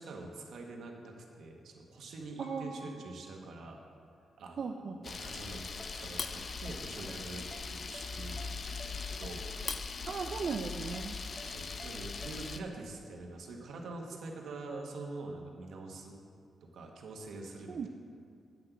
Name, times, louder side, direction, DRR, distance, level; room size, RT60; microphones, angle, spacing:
voice 1, 0.0-3.8 4.4-5.7 5.9-8.4 8.8-9.5 10.4-10.5 11.4-16.2 16.6-17.9, right 3 dB, 75° right, 1 dB, 1.4 m, -45 dB
Piano, 2.4-4.4 5.0-5.1, right 1 dB, 75° left, 1.7 m, -58 dB
voice 2, 2.4-2.8 4.6-5.0 10.1-11.2 17.7-17.9, right 5 dB, 50° right, 4 dB, 0.4 m, -37 dB
Camera, 5.0-12.6, left 4 dB, 40° left, 0.5 m, -40 dB
Ringtone, 5.8-12.7, equal, 10° left, 0.8 m, -55 dB
8.5 x 6.1 x 8.0 m, 2.4 s
wide cardioid pair, 135°, 0 cm